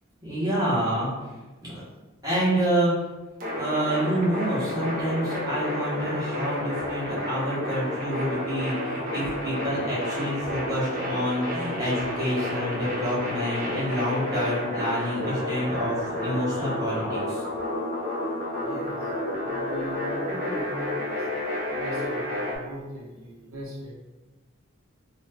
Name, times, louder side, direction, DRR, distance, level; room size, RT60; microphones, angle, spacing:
voice 1, 0.2-1.3 1.6-1.8 2.2-2.9 3.6-17.4, equal, 20° right, -9 dB, 1.0 m, -28 dB
sound 1, 3.4-22.6, left 1 dB, 40° right, 0.6 m, -30 dB
voice 2, 18.6-21.2 21.7-23.9, equal, 85° right, -3 dB, 0.8 m, -39 dB
2.6 x 2.3 x 3.3 m, 1.2 s
head